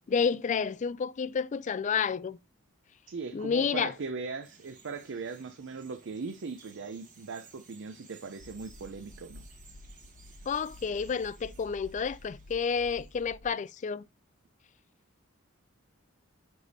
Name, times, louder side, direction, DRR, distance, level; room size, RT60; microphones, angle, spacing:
voice 1, 0.1-2.4 3.3-3.9 10.5-14.0, left 6 dB, 35° left, 0.3 m, -30 dB
voice 2, 3.1-9.4, right 4 dB, 55° right, 0.5 m, -39 dB
Bird vocalization bird call bird song, 4.4-13.3, right 4 dB, 40° right, 1.7 m, -58 dB
sound 1, 8.4-13.5, left 1 dB, 75° left, 0.9 m, -51 dB
9.9 x 3.4 x 4.1 m
head